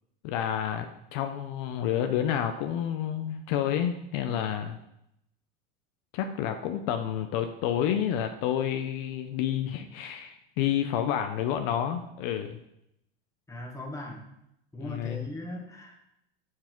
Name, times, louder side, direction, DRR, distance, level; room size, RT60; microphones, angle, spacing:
voice 1, 0.2-4.8 6.1-12.6 14.8-15.3, left 10 dB, 65° left, 7 dB, 0.7 m, -29 dB
voice 2, 13.5-14.3 14.7-16.0, left 1 dB, 10° left, 1 dB, 1.2 m, -39 dB
5.9 x 4.7 x 4.5 m, 0.79 s
supercardioid pair, 115°, 30 cm